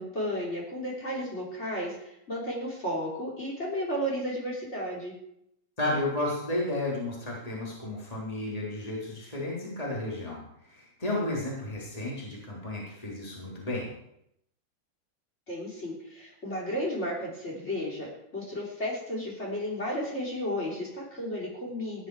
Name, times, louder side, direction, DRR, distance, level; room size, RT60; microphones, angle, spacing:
voice 1, 0.0-5.1 15.5-18.1 18.3-22.1, equal, 35° left, -3 dB, 3.7 m, -33 dB
voice 2, 5.8-13.9, left 1 dB, 20° left, -4 dB, 3.5 m, -33 dB
17.0 x 10.0 x 4.8 m, 0.78 s
omnidirectional pair, 2.1 m